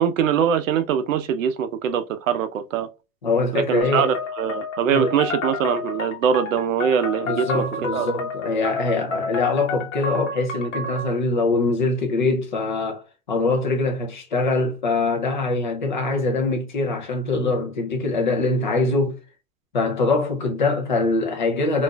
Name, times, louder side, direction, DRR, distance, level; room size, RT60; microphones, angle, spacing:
voice 1, 0.0-2.9 3.5-7.6 7.9-8.1, right 8 dB, 65° right, 0.6 m, -22 dB
voice 2, 3.2-4.1 4.9-5.1 7.2-19.2 19.7-21.8, left 3 dB, 35° left, 0.5 m, -23 dB
sound 1, 3.8-11.2, left 3 dB, 55° left, 1.0 m, -30 dB
2.5 x 2.2 x 3.7 m
supercardioid pair, 180°, 44 cm